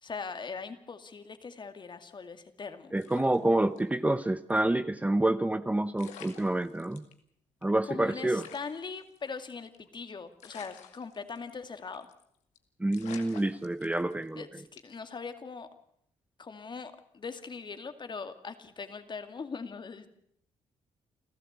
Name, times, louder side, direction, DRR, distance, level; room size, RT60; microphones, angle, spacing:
voice 1, 0.0-2.9 7.8-12.1 14.4-15.7 16.4-20.1, left 5 dB, 40° left, 8 dB, 2.3 m, -41 dB
voice 2, 2.9-7.0 7.6-8.4 12.8-14.4, right 1 dB, 10° right, 12 dB, 0.8 m, -28 dB
sound 1, 3.0-4.2 4.5-4.6 5.6-5.7 6.0-7.1 7.6-7.7 7.9-8.0 8.3-9.9 10.4-11.7 11.9-12.2 12.6-12.7 12.9-14.3 14.8-15.1, left 9 dB, 90° left, 2.2 m, -50 dB
29.5 x 13.0 x 8.1 m, 0.71 s
cardioid pair, 70°, 12 cm